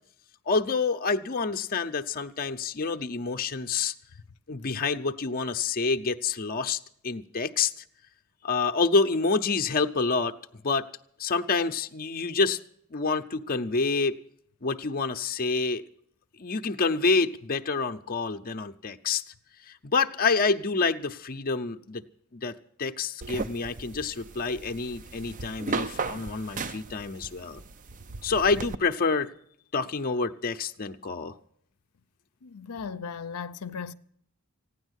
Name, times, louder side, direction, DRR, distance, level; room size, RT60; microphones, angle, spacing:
voice 1, 0.5-3.9 4.5-7.7 8.4-10.4 10.6-10.9 11.2-12.6 12.9-14.2 14.6-15.8 16.4-19.2 19.7-22.0 22.3-22.5 22.8-27.6 28.2-29.3 29.7-31.4, left 4 dB, 40° left, 0.7 m, -27 dB
sound 1, 23.2-28.8, right 3 dB, 35° right, 0.5 m, -36 dB
voice 2, 32.4-33.9, left 6 dB, 80° left, 0.6 m, -37 dB
16.0 x 9.9 x 8.1 m
head